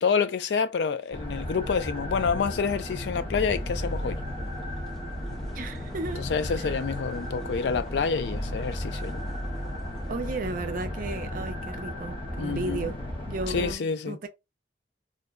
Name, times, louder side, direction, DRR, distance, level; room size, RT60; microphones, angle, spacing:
voice 1, 0.0-4.2 6.2-9.2 12.4-12.9 13.5-14.2, left 5 dB, 70° left, 0.4 m, -28 dB
sound 1, 1.1-13.7, left 1 dB, 30° left, 0.9 m, -34 dB
sound 2, 3.7-10.2, equal, ahead, 0.5 m, -46 dB
voice 2, 5.5-6.2 6.6-6.7 10.1-13.0 13.3-14.3, right 3 dB, 50° right, 0.5 m, -34 dB
2.6 x 2.1 x 3.4 m
head